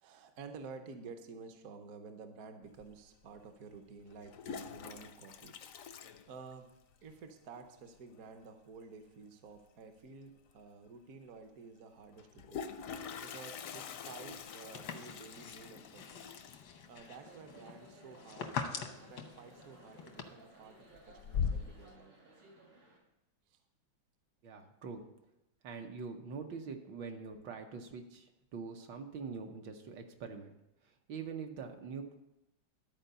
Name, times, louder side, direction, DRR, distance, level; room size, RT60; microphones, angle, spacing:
voice 1, 0.0-5.5 6.3-6.7 7.0-12.6 13.2-16.3 16.9-22.1 23.5-23.6, right 4 dB, 55° right, 7 dB, 1.1 m, -52 dB
Toilet flush, 2.8-2.9 4.1-6.9 7.2-7.3 7.6-7.7 7.9-8.3 10.1-10.2 10.5-10.6 12.1-18.8 19.1-19.6 20.0-20.5 20.9-21.9, left 7 dB, 70° left, 0.7 m, -43 dB
sound 1, 13.5-20.2, left 6 dB, 90° left, 1.7 m, -45 dB
sound 2, 17.0-23.0, right 3 dB, 90° right, 3.1 m, -59 dB
voice 2, 24.4-25.0 25.6-30.5 31.1-32.1, right 5 dB, 75° right, 4 dB, 1.6 m, -44 dB
12.0 x 4.6 x 6.7 m, 0.89 s
omnidirectional pair, 2.1 m